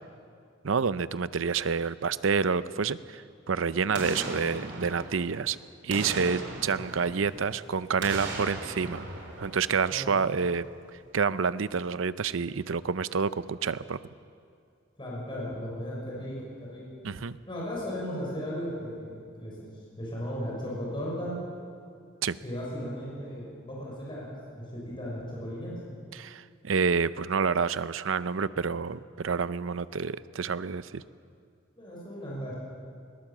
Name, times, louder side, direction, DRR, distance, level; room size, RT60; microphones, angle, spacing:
voice 1, 0.6-3.2 3.5-5.6 5.8-9.1 9.4-10.6 11.1-14.0 17.0-17.4 22.2-22.4 26.1-31.0, right 5 dB, 80° right, 15 dB, 0.6 m, -28 dB
Boom, 3.9-5.5 5.9-7.5 8.0-10.2 10.6-10.7, right 2 dB, 65° right, 4.0 m, -38 dB
voice 2, 9.9-10.2 15.0-16.8 17.5-19.7 20.0-21.4 22.4-25.8 31.7-32.5, equal, 25° left, -5 dB, 6.2 m, -36 dB
21.0 x 19.5 x 7.4 m, 2.4 s
head